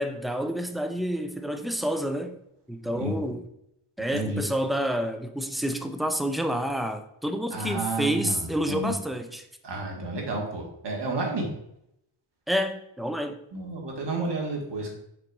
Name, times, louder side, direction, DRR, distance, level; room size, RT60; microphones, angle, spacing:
voice 1, 0.0-2.3 2.7-3.5 4.0-9.5 12.5-13.4, equal, ahead, 0.4 m, -29 dB
voice 2, 2.8-3.3 4.1-4.4 7.5-8.9 9.6-11.5 13.5-14.9, right 2 dB, 55° right, 1.7 m, -31 dB
6.0 x 3.9 x 4.7 m
wide cardioid pair, 155°, 49 cm